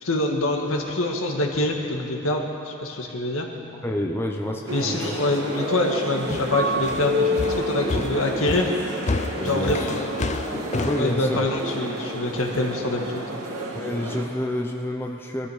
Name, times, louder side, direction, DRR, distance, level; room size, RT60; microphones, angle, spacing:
voice 1, 0.0-3.5 4.7-8.7 9.4-10.1 11.0-13.1, left 2 dB, 75° left, 1 dB, 1.7 m, -25 dB
sound 1, 3.4-12.1, left 1 dB, 60° left, 3.7 m, -44 dB
voice 2, 3.8-5.1 9.4-10.0 10.8-11.4 13.7-15.5, left 1 dB, 10° left, 1 dB, 0.8 m, -28 dB
sound 2, 4.7-14.2, equal, 85° right, 2.1 m, -29 dB
sound 3, 6.3-11.1, left 3 dB, 35° left, 0.5 m, -29 dB
21.0 x 13.0 x 4.9 m, 2.8 s
head